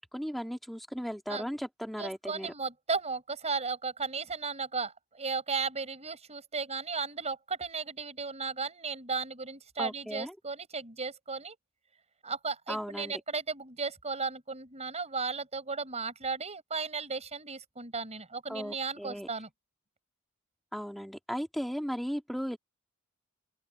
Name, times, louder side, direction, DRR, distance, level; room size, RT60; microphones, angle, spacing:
voice 1, 0.0-2.5 9.8-10.3 12.7-13.2 18.5-19.3 20.7-22.6, equal, ahead, 1.9 m, -36 dB
voice 2, 2.0-11.6 12.2-19.5, right 4 dB, 30° right, 5.5 m, -35 dB
open air
head